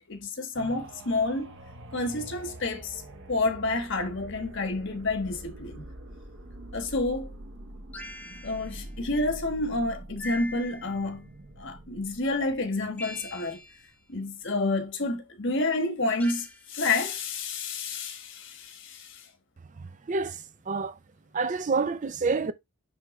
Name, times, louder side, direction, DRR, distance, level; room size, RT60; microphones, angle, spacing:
voice 1, 0.0-1.6 1.9-3.0 3.3-5.8 6.7-7.3 8.4-11.3 11.6-13.6 14.1-19.3, left 2 dB, 55° left, 1.4 m, -29 dB
sound 1, 0.5-14.2 14.7-14.8, right 1 dB, 55° right, 1.1 m, -45 dB
sound 2, 7.9-8.9 10.2-11.1 13.0-13.9 16.2-16.7, left 1 dB, 5° left, 0.7 m, -42 dB
voice 2, 20.1-20.4 20.7-20.9 21.3-22.5, right 4 dB, 35° right, 0.4 m, -27 dB
9.9 x 3.6 x 3.1 m
head